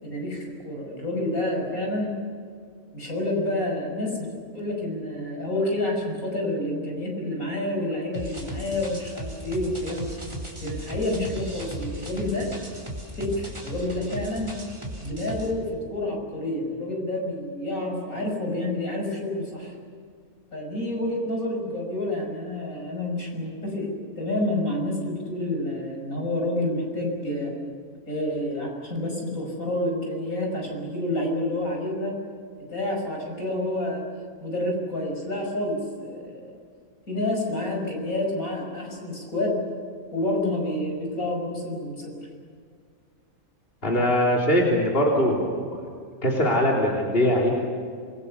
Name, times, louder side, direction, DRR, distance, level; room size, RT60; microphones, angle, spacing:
voice 1, 0.0-2.1 2.9-10.1 10.6-12.5 13.2-14.6 15.0-19.7 20.5-23.9 24.2-27.5 28.1-32.1 32.7-34.0 34.4-36.5 37.1-39.6 40.1-42.1, left 1 dB, 70° left, 0 dB, 6.2 m, -29 dB
sound 1, 8.1-15.5, equal, 20° right, 3.7 m, -36 dB
voice 2, 43.8-45.7 46.2-47.5, equal, 40° left, -3 dB, 3.7 m, -21 dB
28.0 x 22.0 x 7.0 m, 2.1 s
omnidirectional pair, 1.5 m